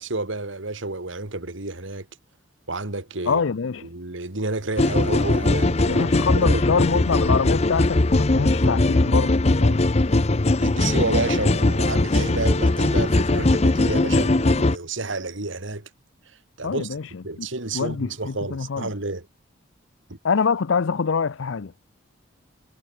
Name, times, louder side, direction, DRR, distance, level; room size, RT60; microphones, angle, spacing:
voice 1, 0.0-2.1 2.7-3.4 3.8-6.1 6.4-7.0 10.6-15.9 16.3-17.0 17.2-19.3 20.1-20.2, right 2 dB, 70° right, 2.3 m, -30 dB
voice 2, 3.3-3.9 5.9-9.9 16.6-17.1 17.4-17.5 17.7-18.9 20.2-21.7, left 5 dB, 70° left, 0.5 m, -25 dB
sound 1, 4.8-14.8, left 2 dB, 30° left, 0.7 m, -20 dB
head